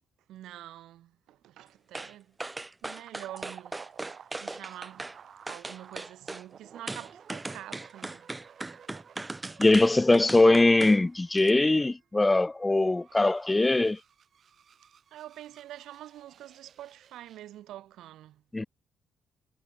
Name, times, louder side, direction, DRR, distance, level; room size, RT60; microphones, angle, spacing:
voice 1, 0.3-2.4 2.8-5.1 5.5-8.3 15.1-18.4, right 13 dB, 80° right, 4.3 m, -46 dB
sound 1, 1.9-2.1 2.4-5.2 5.5-6.4 6.9-11.0 11.4-11.5, right 2 dB, 15° right, 1.8 m, -38 dB
sound 2, 3.1-17.6, right 7 dB, 55° right, 6.1 m, -54 dB
voice 2, 9.6-14.0 18.5-18.6, left 2 dB, 15° left, 0.5 m, -21 dB
cardioid pair, 90°, 0 cm